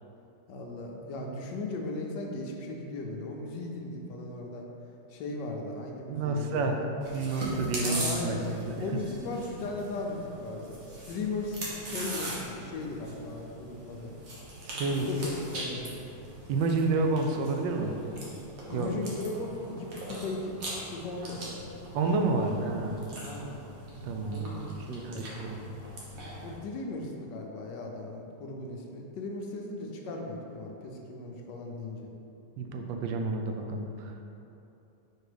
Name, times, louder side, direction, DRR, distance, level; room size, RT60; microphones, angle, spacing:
voice 1, 0.5-4.7 5.1-6.8 7.8-8.5 8.8-14.1 15.0-16.0 18.7-20.5 20.9-21.7 23.2-23.6 24.3-25.4 26.4-32.1, left 2 dB, 75° left, 1 dB, 1.3 m, -37 dB
voice 2, 6.1-6.8 7.1-8.7 14.7-15.1 16.5-17.9 18.7-18.9 21.9-23.0 24.0-24.5 24.9-25.6 32.6-34.1, right 3 dB, 85° right, 3 dB, 1.3 m, -29 dB
Chewing mastication, 7.0-26.6, right 1 dB, 50° right, 1.5 m, -41 dB
4.5 x 4.4 x 5.0 m, 2.9 s
omnidirectional pair, 2.0 m